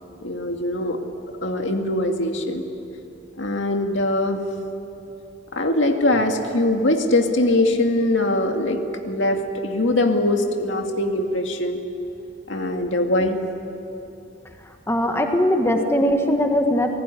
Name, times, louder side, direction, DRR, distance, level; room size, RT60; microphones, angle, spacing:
voice 1, 0.2-1.0 1.4-2.6 3.4-4.4 5.5-11.8 12.5-13.4, left 1 dB, 70° left, 4 dB, 2.3 m, -22 dB
voice 2, 14.9-17.0, equal, 15° left, 3 dB, 1.6 m, -20 dB
28.5 x 19.0 x 10.0 m, 2.8 s
head